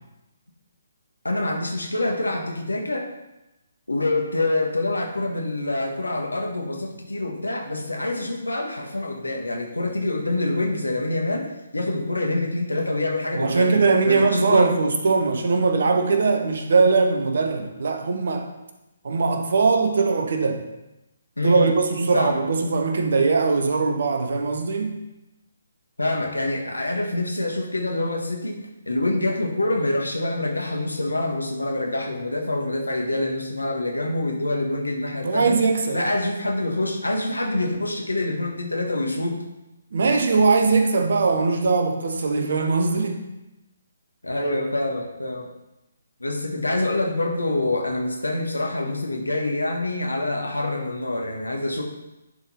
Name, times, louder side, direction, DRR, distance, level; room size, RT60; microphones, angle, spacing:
voice 1, 1.2-3.1 3.9-14.7 21.4-21.7 22.1-22.4 26.0-35.6 35.9-39.4 44.2-45.5 46.2-51.8, left 2 dB, 80° left, 1 dB, 1.5 m, -26 dB
voice 2, 13.3-18.5 19.0-20.6 21.4-25.0 35.2-36.0 39.9-43.2, right 4 dB, 55° right, 5 dB, 1.1 m, -21 dB
11.0 x 4.4 x 4.3 m, 0.95 s
figure-of-eight pair, 140°, 0 cm